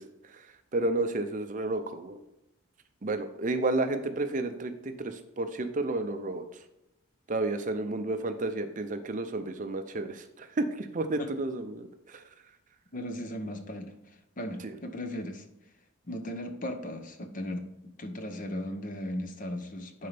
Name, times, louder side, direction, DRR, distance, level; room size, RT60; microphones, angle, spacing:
voice 1, 0.0-2.2 3.0-6.6 7.3-12.2 14.6-14.8, right 2 dB, 35° right, 8 dB, 0.6 m, -32 dB
voice 2, 12.9-15.5 16.1-17.7 18.0-20.1, left 1 dB, 40° left, 7 dB, 0.8 m, -37 dB
10.5 x 4.3 x 3.4 m, 0.90 s
head